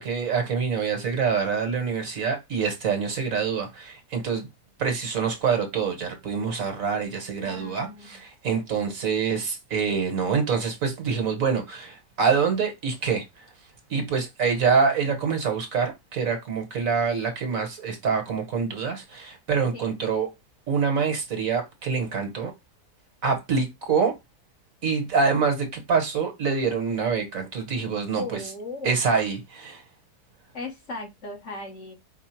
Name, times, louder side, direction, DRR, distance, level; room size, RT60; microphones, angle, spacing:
voice 1, 0.0-4.5 4.8-13.2 13.9-20.3 20.7-22.5 23.2-24.1 24.8-28.4 28.8-29.8, right 5 dB, 60° right, 1.5 m, -25 dB
voice 2, 7.4-8.2 19.7-19.9 28.2-29.0 30.5-31.9, left 2 dB, 50° left, 1.5 m, -37 dB
5.0 x 2.3 x 4.4 m
omnidirectional pair, 1.7 m